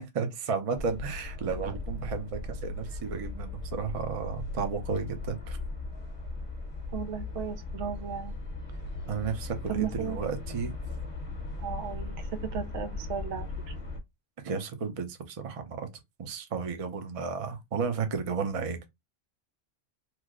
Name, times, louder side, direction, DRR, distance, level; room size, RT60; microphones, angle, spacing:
voice 1, 0.0-5.6 9.1-10.8 14.4-15.9 16.2-18.9, right 5 dB, 40° right, 0.6 m, -33 dB
sound 1, 0.8-14.0, left 2 dB, 35° left, 0.8 m, -38 dB
voice 2, 6.9-8.4 9.7-10.2 11.6-13.7, right 8 dB, 85° right, 0.9 m, -35 dB
3.1 x 2.0 x 3.6 m
omnidirectional pair, 1.1 m